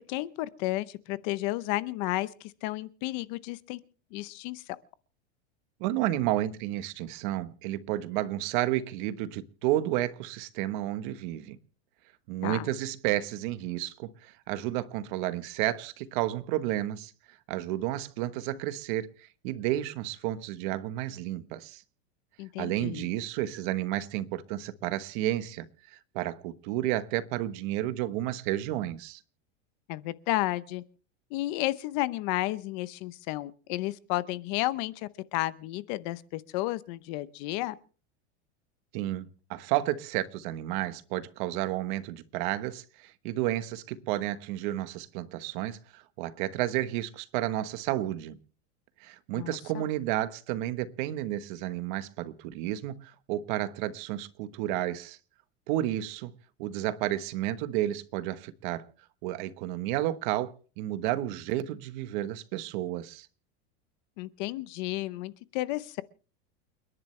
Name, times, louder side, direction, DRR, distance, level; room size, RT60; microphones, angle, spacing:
voice 1, 0.1-3.8 4.1-4.6 12.4-12.7 22.4-23.1 29.9-30.8 31.3-37.8 49.3-49.8 64.2-66.0, left 17 dB, 45° left, 0.8 m, -32 dB
voice 2, 5.8-11.6 12.3-17.1 17.5-21.8 22.6-29.2 38.9-48.4 49.0-55.2 55.7-56.3 56.6-58.9 59.2-63.3, right 14 dB, 45° right, 1.2 m, -31 dB
29.5 x 11.0 x 3.3 m
supercardioid pair, 165°, 34 cm